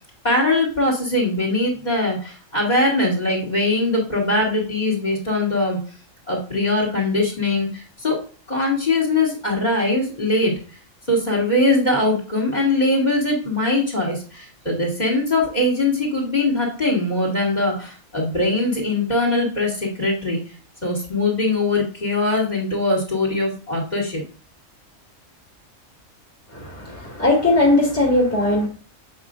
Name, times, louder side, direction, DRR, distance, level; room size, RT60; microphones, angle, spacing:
voice 1, 0.2-5.8 6.3-8.2 8.5-10.5 11.1-20.4 20.8-24.2, left 2 dB, 35° left, 0 dB, 2.4 m, -21 dB
voice 2, 26.5-28.7, left 2 dB, 10° left, -3 dB, 2.1 m, -19 dB
7.6 x 5.5 x 2.5 m, 0.38 s
omnidirectional pair, 1.4 m